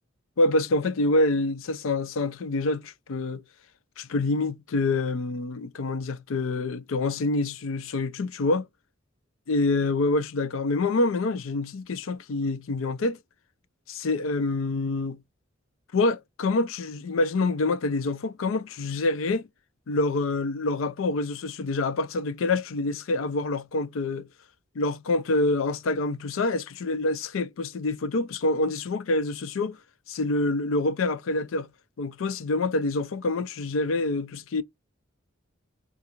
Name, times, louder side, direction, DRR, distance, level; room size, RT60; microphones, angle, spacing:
voice 1, 0.4-3.4 4.0-8.7 9.5-13.2 13.9-15.2 15.9-19.5 19.9-24.3 24.8-29.8 30.1-31.7 32.0-34.6, left 2 dB, 85° left, 0.5 m, -26 dB
3.8 x 2.4 x 2.9 m
head